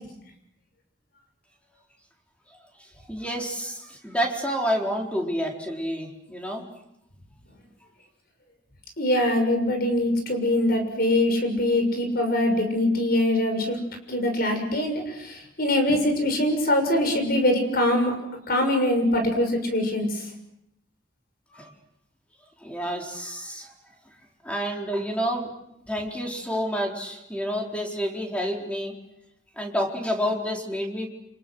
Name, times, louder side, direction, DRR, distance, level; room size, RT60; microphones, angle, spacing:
voice 1, 3.1-6.6 21.5-21.7 22.6-23.7 24.4-25.5 25.9-28.9 29.6-31.1, equal, 5° left, 1 dB, 4.3 m, -29 dB
voice 2, 9.0-13.8 14.1-18.1 18.5-20.2, left 1 dB, 55° left, 4 dB, 6.5 m, -23 dB
29.5 x 27.5 x 6.4 m, 0.81 s
head